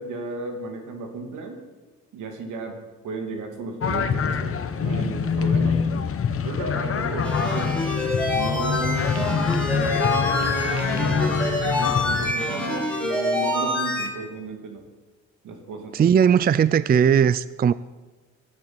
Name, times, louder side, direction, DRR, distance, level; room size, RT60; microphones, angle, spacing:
voice 1, 0.0-1.6 2.1-6.1 6.4-7.8 8.3-11.4 11.7-14.8 15.4-16.0, right 3 dB, 85° right, 2.8 m, -34 dB
sound 1, 3.8-12.3, left 6 dB, 45° left, 1.2 m, -25 dB
sound 2, 7.2-14.1, left 2 dB, 5° left, 4.3 m, -26 dB
voice 2, 15.9-17.7, right 8 dB, 30° right, 0.4 m, -18 dB
13.5 x 11.5 x 7.8 m
cardioid pair, 90°, 30 cm